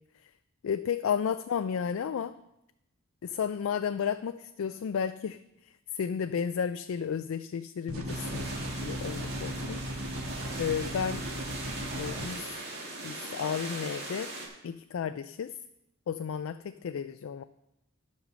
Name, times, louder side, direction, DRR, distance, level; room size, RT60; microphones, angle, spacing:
voice 1, 0.6-2.3 3.2-5.4 5.9-8.5 8.8-10.0 10.6-11.2 11.9-12.4 13.0-14.3 14.6-15.5 16.1-17.4, left 7 dB, 75° left, 10 dB, 0.3 m, -32 dB
sound 1, 7.9-12.3, equal, 90° right, 1.5 m, -37 dB
sound 2, 8.1-14.5, right 2 dB, 50° right, 2.2 m, -40 dB
11.5 x 5.4 x 6.2 m, 0.85 s
head